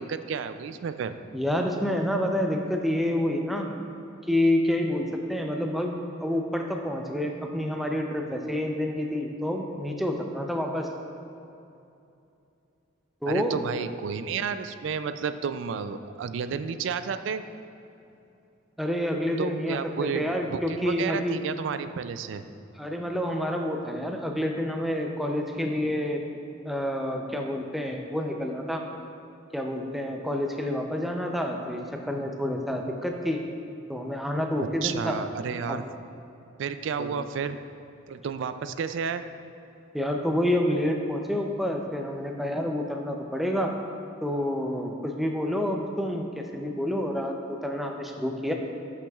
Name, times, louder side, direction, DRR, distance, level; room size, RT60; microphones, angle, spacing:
voice 1, 0.0-1.1 13.3-17.4 19.4-22.4 34.8-35.8 36.6-37.6 38.1-39.3, right 6 dB, 70° right, 11 dB, 0.3 m, -31 dB
voice 2, 1.3-3.7 4.3-10.9 13.2-13.5 18.8-21.4 22.8-26.2 26.7-28.8 29.5-33.4 33.9-35.2 35.7-35.8 37.0-37.2 39.9-43.7 44.2-48.5, left 1 dB, ahead, 2 dB, 0.5 m, -28 dB
11.5 x 5.9 x 2.3 m, 2.7 s
head